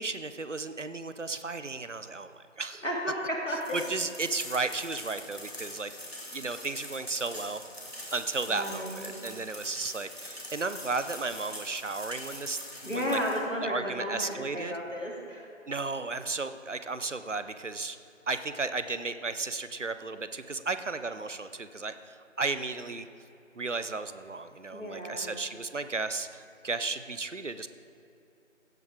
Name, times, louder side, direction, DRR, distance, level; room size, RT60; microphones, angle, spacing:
voice 1, 0.0-2.8 3.7-5.9 6.3-7.6 8.1-13.2 13.6-14.7 15.7-18.0 18.3-23.1 23.5-27.7, right 3 dB, 65° right, 11 dB, 0.7 m, -34 dB
voice 2, 2.8-3.8 8.5-9.1 12.8-15.5 24.7-25.3, equal, 70° left, -2 dB, 2.7 m, -33 dB
sound 1, 3.6-13.4, left 1 dB, 50° left, 2.0 m, -43 dB
16.0 x 6.1 x 4.7 m, 2.8 s
figure-of-eight pair, 180°, 39 cm